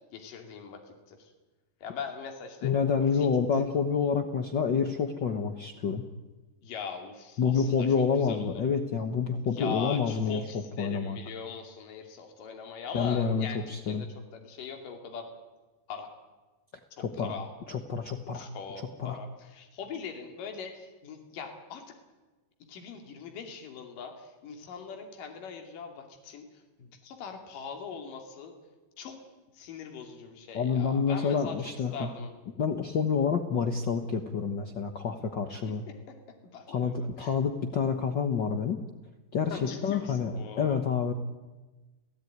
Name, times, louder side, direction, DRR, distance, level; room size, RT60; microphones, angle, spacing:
voice 1, 0.1-0.8 1.1-1.3 1.8-2.7 3.0-3.3 3.5-3.7 6.6-7.9 8.2-8.6 9.5-13.6 13.8-14.1 14.3-15.3 15.9-16.1 17.2-17.5 18.3-21.8 22.7-26.5 26.8-28.5 29.0-29.2 29.6-31.6 31.9-32.3 36.5-36.9 37.2-37.3 39.5-40.8, left 6 dB, 65° left, 3 dB, 4.2 m, -41 dB
voice 2, 2.6-6.0 7.4-11.2 12.9-14.1 17.0-17.3 17.7-18.5 19.0-19.2 30.5-32.1 32.6-35.8 36.7-38.8 39.3-41.1, left 6 dB, 85° left, 6 dB, 1.0 m, -28 dB
29.5 x 17.0 x 9.5 m, 1.2 s
omnidirectional pair, 4.2 m